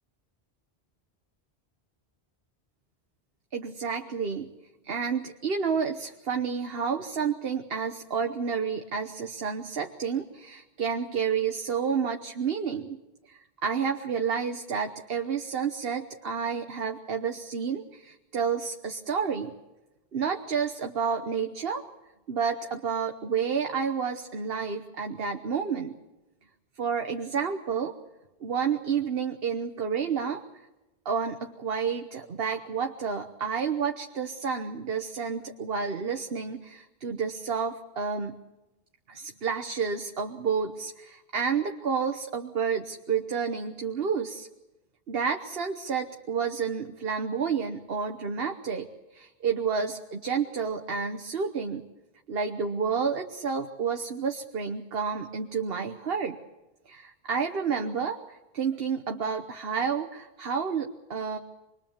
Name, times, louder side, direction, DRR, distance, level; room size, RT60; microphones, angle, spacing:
voice 1, 3.5-4.5 4.8-13.0 13.3-19.5 20.1-21.8 22.3-26.0 26.8-27.9 28.4-30.4 31.0-38.3 39.1-44.5 45.1-48.9 49.1-51.8 52.3-56.4 56.9-61.4, right 6 dB, 65° right, 5 dB, 1.3 m, -30 dB
25.5 x 21.5 x 7.3 m, 1.0 s
omnidirectional pair, 1.1 m